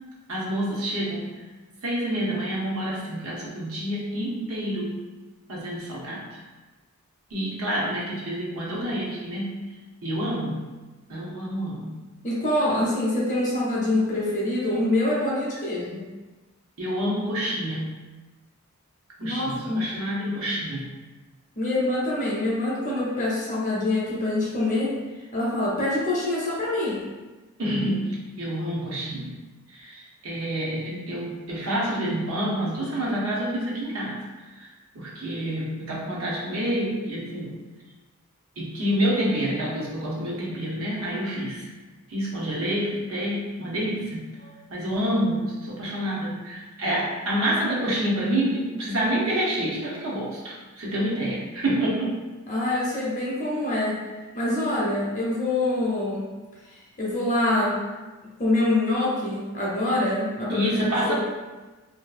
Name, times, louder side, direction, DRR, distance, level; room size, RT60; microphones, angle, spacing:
voice 1, 0.3-1.3 1.8-4.9 5.5-6.3 7.3-9.6 10.0-10.6 11.1-11.9 16.8-17.9 19.2-20.8 27.6-29.3 29.7-34.2 34.6-37.5 38.6-41.6 42.1-44.3 44.7-52.2 60.5-61.1, right 1 dB, 65° right, -5 dB, 0.7 m, -28 dB
voice 2, 12.2-16.1 19.2-19.9 21.6-24.9 25.3-27.0 44.4-44.5 52.5-54.0 54.3-56.3 57.0-57.8 58.4-61.1, left 1 dB, 35° left, -5 dB, 0.6 m, -25 dB
2.6 x 2.3 x 2.4 m, 1.2 s
head